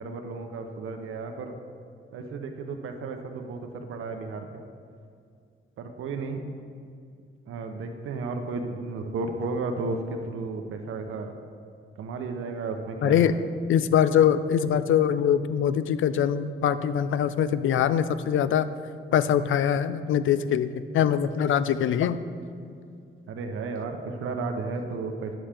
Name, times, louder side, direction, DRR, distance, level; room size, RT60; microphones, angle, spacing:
voice 1, 0.0-1.5 2.1-4.6 5.8-6.4 7.5-11.3 12.0-13.3 23.3-25.4, right 3 dB, 80° right, 4 dB, 0.7 m, -33 dB
voice 2, 13.0-13.4 13.7-18.7 19.1-22.2, left 9 dB, 70° left, 13 dB, 0.4 m, -23 dB
10.0 x 7.3 x 3.4 m, 2.3 s
cardioid pair, 85°, 21 cm